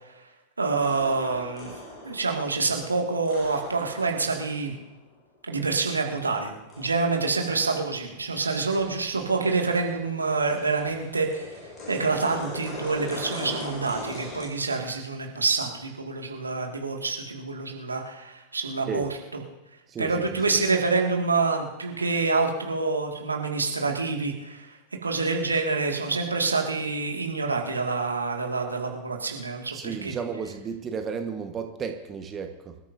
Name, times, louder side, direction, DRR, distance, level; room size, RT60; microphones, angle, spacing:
voice 1, 0.6-1.7 2.0-4.8 5.5-11.5 11.9-19.1 20.0-24.7 25.0-29.8 30.0-30.2, right 4 dB, 80° right, 2 dB, 2.0 m, -27 dB
sound 1, 0.8-5.0 5.9-8.4 8.7-14.5, left 2 dB, 25° left, 5.6 m, -41 dB
voice 2, 19.9-20.3 29.7-32.8, right 6 dB, 25° right, 6 dB, 1.3 m, -33 dB
26.0 x 13.5 x 2.7 m, 1.0 s
figure-of-eight pair, 90°, 0 cm